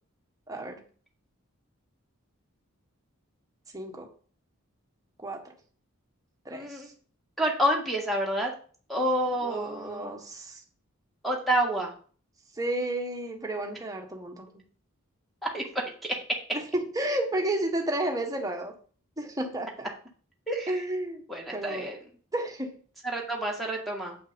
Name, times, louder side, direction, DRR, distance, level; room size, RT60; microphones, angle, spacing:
voice 1, 0.5-0.8 3.7-4.1 5.2-5.5 6.4-6.9 9.4-10.6 12.5-14.6 16.5-18.7 19.2-19.9 20.7-21.2 21.5-21.9 22.3-22.8, right 1 dB, 15° right, 2 dB, 1.3 m, -32 dB
voice 2, 6.5-6.9 7.4-8.5 8.9-10.1 11.2-11.9 15.5-15.6 20.5-20.7 21.3-22.0 23.0-24.2, right 1 dB, ahead, 0 dB, 1.8 m, -28 dB
8.2 x 5.6 x 5.2 m, 0.42 s
head